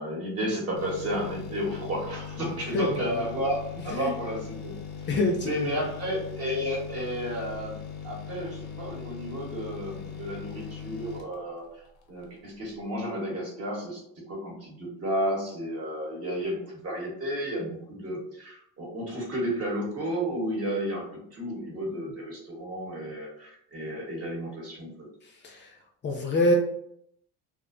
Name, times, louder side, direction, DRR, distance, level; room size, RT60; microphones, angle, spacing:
voice 1, 0.0-5.1 5.4-7.8 8.0-11.7 12.1-25.1, equal, 45° right, -1 dB, 1.0 m, -32 dB
sound 1, 0.7-12.4 12.7-12.8, left 7 dB, 85° left, 0.6 m, -40 dB
voice 2, 2.7-3.2 3.9-4.1 5.1-5.8 25.2-25.8 26.0-26.5, left 2 dB, 35° left, 1 dB, 0.4 m, -26 dB
2.4 x 2.1 x 2.5 m, 0.72 s
cardioid pair, 100°, 34 cm